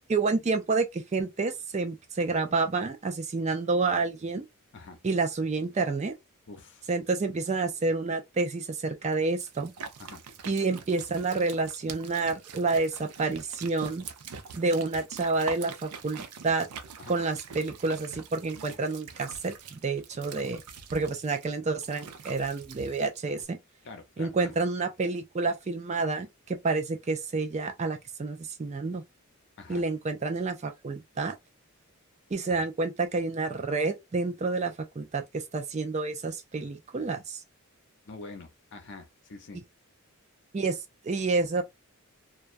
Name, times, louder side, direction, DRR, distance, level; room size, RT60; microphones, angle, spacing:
voice 1, 0.1-4.5 5.0-6.1 6.9-9.7 10.5-14.0 14.5-16.7 17.1-20.6 20.9-23.6 24.2-29.0 29.7-31.3 32.3-37.4 40.5-40.8 41.0-41.6, right 3 dB, 30° right, 0.4 m, -29 dB
voice 2, 6.5-6.9 10.0-10.2 17.0-17.2 23.8-24.5 29.6-29.8 32.5-32.6 38.1-39.6, left 3 dB, 55° left, 0.7 m, -45 dB
sound 1, 9.1-23.4, right 6 dB, 90° right, 0.5 m, -44 dB
2.3 x 2.2 x 2.5 m
head